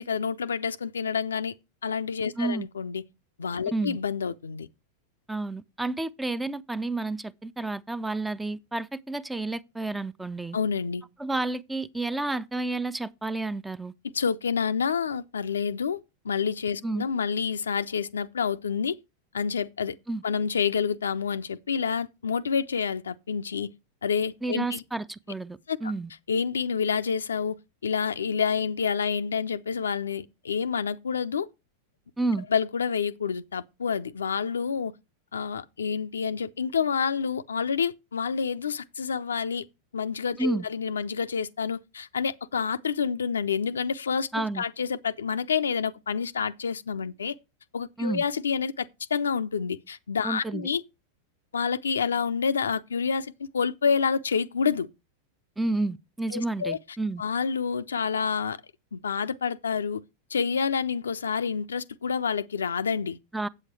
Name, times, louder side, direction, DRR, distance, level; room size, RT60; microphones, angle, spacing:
voice 1, 0.0-1.5 1.8-3.0 3.4-4.7 10.5-11.0 14.1-16.0 16.2-19.0 19.3-19.9 20.2-23.7 24.0-24.8 25.7-25.9 26.3-27.6 27.8-31.5 32.5-34.9 35.3-39.6 39.9-47.3 47.7-50.8 51.5-54.9 56.3-56.8 57.2-58.6 58.9-60.0 60.3-63.2, left 6 dB, 70° left, 0.5 m, -28 dB
voice 2, 2.4-2.7 3.7-4.0 5.3-10.6 11.2-13.9 16.8-17.0 20.1-20.2 24.4-26.1 32.2-32.5 40.4-40.7 44.3-44.6 48.0-48.2 50.2-50.7 55.6-57.2 63.3-63.5, right 2 dB, 5° right, 0.4 m, -30 dB
8.0 x 7.7 x 4.6 m
figure-of-eight pair, 90°, 0 cm